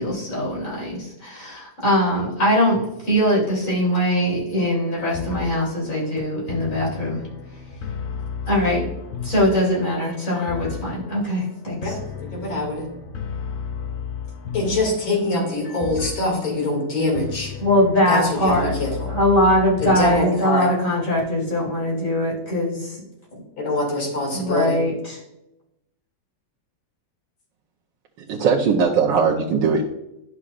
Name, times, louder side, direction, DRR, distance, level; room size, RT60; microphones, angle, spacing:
voice 1, 0.0-7.2 8.5-8.9 9.2-11.9 17.6-18.7 19.1-23.0 24.3-25.2, left 1 dB, 40° left, -5 dB, 3.7 m, -21 dB
sound 1, 4.6-20.5, left 6 dB, 55° left, 0.7 m, -34 dB
voice 2, 11.8-12.9 14.5-17.5 18.1-19.1 19.8-20.7 23.6-24.8, left 1 dB, 90° left, 0 dB, 3.1 m, -24 dB
voice 3, 28.2-29.9, right 5 dB, 75° right, -3 dB, 1.5 m, -19 dB
11.0 x 6.3 x 2.4 m, 0.88 s
omnidirectional pair, 2.1 m